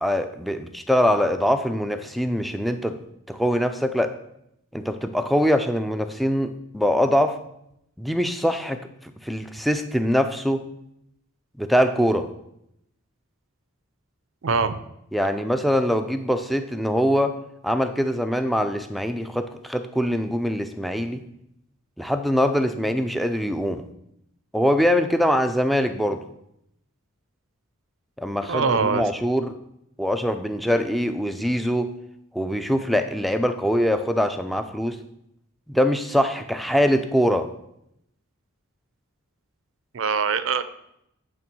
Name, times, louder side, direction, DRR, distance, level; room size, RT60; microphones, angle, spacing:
voice 1, 0.0-3.0 3.3-4.1 4.7-7.4 8.0-10.6 11.6-12.3 15.1-17.4 17.6-21.2 22.0-23.8 24.5-26.2 28.2-29.5 30.0-31.9 32.3-35.0 35.7-37.5, equal, ahead, 8 dB, 0.4 m, -23 dB
voice 2, 14.4-14.8 28.4-29.1 39.9-40.6, right 5 dB, 60° right, 13 dB, 0.5 m, -23 dB
8.7 x 3.6 x 6.1 m, 0.79 s
head